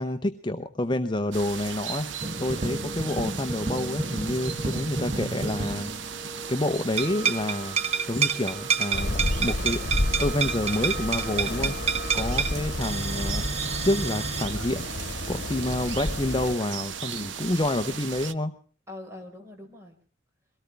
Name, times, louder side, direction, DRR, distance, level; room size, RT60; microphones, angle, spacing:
voice 1, 0.0-2.1 2.4-5.9 6.5-7.8 8.1-9.9 10.2-13.5 13.8-14.9 15.3-18.5, left 1 dB, 25° left, 7 dB, 0.8 m, -28 dB
sound 1, 1.3-18.3, right 7 dB, 80° right, 0.9 m, -37 dB
sound 2, 2.2-6.7 7.0-14.4, right 5 dB, 35° right, 1.0 m, -30 dB
sound 3, 8.9-16.5, left 1 dB, 60° left, 1.8 m, -31 dB
voice 2, 18.9-20.0, left 2 dB, 15° right, 2 dB, 4.7 m, -45 dB
23.0 x 18.0 x 3.4 m, 0.42 s
head